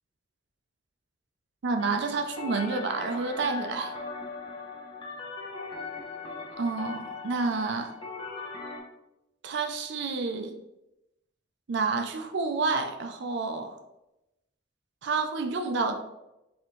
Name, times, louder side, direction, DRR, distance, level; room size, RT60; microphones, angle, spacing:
voice 1, 1.6-3.9 6.6-7.9 9.4-10.5 11.7-13.8 15.0-16.0, right 4 dB, 65° right, 6 dB, 0.4 m, -29 dB
sound 1, 1.8-8.8, left 3 dB, 25° left, 0.7 m, -39 dB
4.2 x 3.5 x 3.0 m, 0.92 s
head